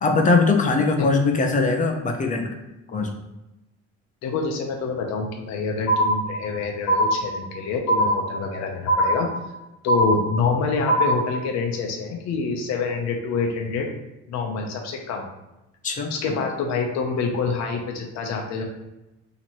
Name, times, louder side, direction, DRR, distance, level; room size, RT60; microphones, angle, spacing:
voice 1, 0.0-2.5 2.9-3.1 15.8-16.1, left 3 dB, 25° left, 3 dB, 0.4 m, -21 dB
voice 2, 4.2-9.3 9.8-13.9 14.3-15.3 16.1-18.6, left 4 dB, 65° left, 1 dB, 0.7 m, -26 dB
sound 1, 5.9-6.5 6.9-7.5 7.9-8.5 8.9-9.5 9.9-10.5 10.9-11.4, right 1 dB, 90° left, 0.9 m, -21 dB
2.9 x 2.9 x 4.3 m, 0.98 s
cardioid pair, 130°, 29 cm